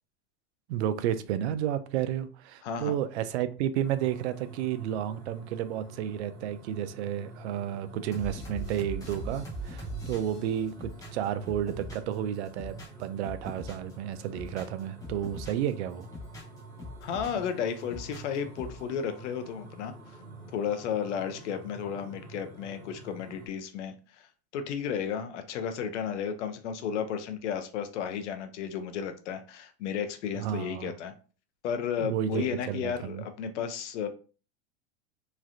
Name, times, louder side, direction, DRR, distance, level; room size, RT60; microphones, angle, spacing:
voice 1, 0.7-16.1 30.4-30.9 32.0-33.2, right 10 dB, 70° right, 0.5 m, -32 dB
voice 2, 2.6-3.0 17.0-19.9 20.5-24.3 24.5-31.1 31.6-34.1, left 7 dB, 85° left, 0.7 m, -33 dB
sound 1, 3.8-23.5, right 2 dB, 5° right, 1.1 m, -48 dB
sound 2, 8.1-12.2 12.4-13.9 14.2-15.7 16.0-17.5 17.8-18.8, equal, 10° left, 0.7 m, -41 dB
3.1 x 2.4 x 2.5 m
supercardioid pair, 155°, 34 cm